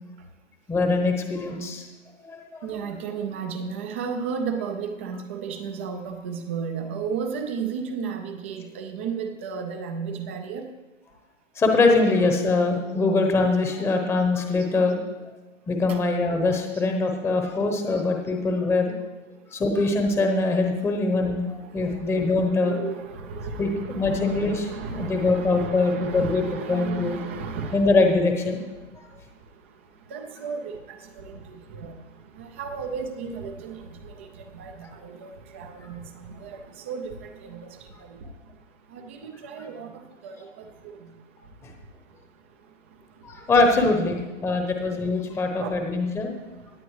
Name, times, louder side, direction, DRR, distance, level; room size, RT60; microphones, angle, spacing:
voice 1, 0.7-1.9 2.2-2.7 11.6-15.0 15.7-18.9 19.5-22.8 23.6-26.4 26.7-27.2 27.7-28.6 29.0-29.1 41.6-41.7 43.2-46.3, left 3 dB, 5° left, 3 dB, 0.9 m, -23 dB
voice 2, 2.6-10.6 20.5-20.6 21.9-27.9 30.1-30.8 31.2-31.9 32.4-33.8 34.5-36.0 36.3-36.6 36.9-37.1 37.4-37.7 38.9-39.9 40.2-40.3 45.6-45.7, right 6 dB, 10° right, 5 dB, 0.3 m, -33 dB
17.0 x 9.4 x 3.2 m, 1.2 s
hypercardioid pair, 135°, 37 cm